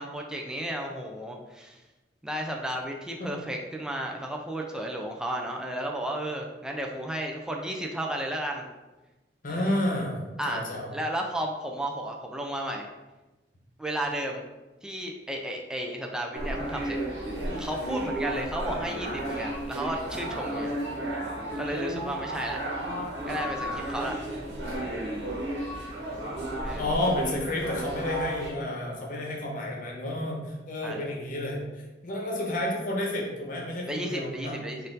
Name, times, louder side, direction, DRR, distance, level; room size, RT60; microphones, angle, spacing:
voice 1, 0.0-1.8 2.2-8.7 9.5-9.7 10.4-10.6 10.9-12.9 13.8-14.4 14.8-17.0 17.4-20.7 21.6-22.6 23.3-24.1 26.6-26.9 30.8-31.1 33.9-34.8, right 1 dB, 5° right, 1 dB, 0.4 m, -33 dB
voice 2, 9.4-10.9 26.8-31.6 32.0-34.6, left 1 dB, 50° left, -1 dB, 0.9 m, -30 dB
sound 1, 16.3-28.5, right 1 dB, 90° right, 1.1 m, -33 dB
4.2 x 2.6 x 3.8 m, 1.1 s
head